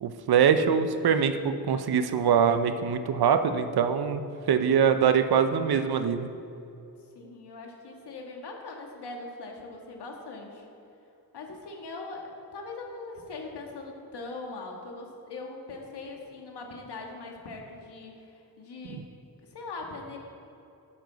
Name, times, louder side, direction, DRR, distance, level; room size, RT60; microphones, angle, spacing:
voice 1, 0.0-6.3, right 7 dB, 70° right, 9 dB, 0.7 m, -23 dB
voice 2, 7.1-10.7 11.3-19.0 19.5-20.2, left 3 dB, 85° left, 1 dB, 1.7 m, -41 dB
10.0 x 9.1 x 4.0 m, 2.8 s
cardioid pair, 85°, 39 cm